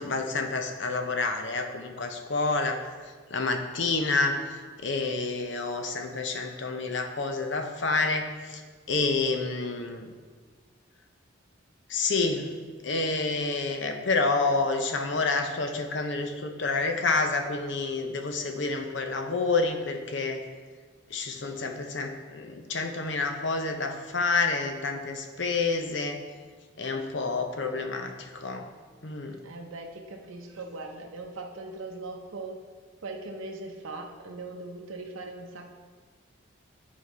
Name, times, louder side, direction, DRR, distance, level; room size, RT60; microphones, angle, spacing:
voice 1, 0.0-2.8 3.3-8.6 8.9-10.1 11.9-12.5 12.8-20.4 21.1-26.2 26.8-28.7 29.0-29.4, left 3 dB, 65° left, 5 dB, 0.7 m, -28 dB
voice 2, 29.4-32.6 33.0-35.7, right 2 dB, 90° right, 2 dB, 0.7 m, -40 dB
8.9 x 4.6 x 4.1 m, 1.5 s
head